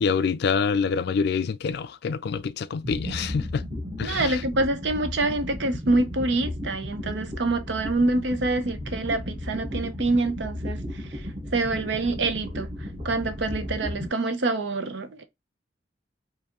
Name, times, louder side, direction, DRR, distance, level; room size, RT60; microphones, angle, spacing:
voice 1, 0.0-3.6 4.0-4.4, left 5 dB, 60° left, 0.3 m, -26 dB
sound 1, 2.8-14.1, left 1 dB, 30° right, 1.3 m, -34 dB
voice 2, 4.0-11.2 11.5-12.7 13.0-15.2, right 2 dB, 75° right, 0.7 m, -26 dB
4.7 x 2.7 x 2.9 m
head